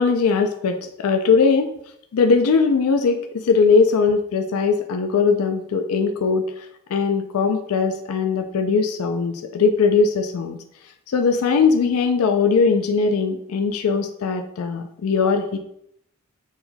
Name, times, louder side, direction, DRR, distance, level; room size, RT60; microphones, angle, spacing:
voice 1, 0.0-1.7 2.1-10.6 11.1-15.6, left 5 dB, 85° left, 5 dB, 0.4 m, -20 dB
4.3 x 2.2 x 3.8 m, 0.72 s
head